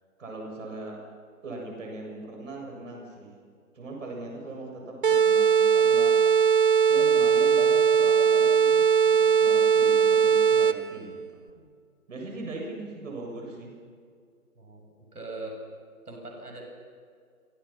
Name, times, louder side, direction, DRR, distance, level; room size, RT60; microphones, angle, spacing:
voice 1, 0.2-1.0 1.4-3.3 3.7-6.2 6.9-11.2 12.1-13.7, right 2 dB, 55° right, 0 dB, 7.6 m, -39 dB
sound 1, 5.0-11.0, right 7 dB, 35° right, 0.8 m, -20 dB
voice 2, 14.6-15.6 16.0-16.6, right 2 dB, 90° right, 1 dB, 7.7 m, -41 dB
28.0 x 26.5 x 5.8 m, 2.1 s
figure-of-eight pair, 150°, 45 cm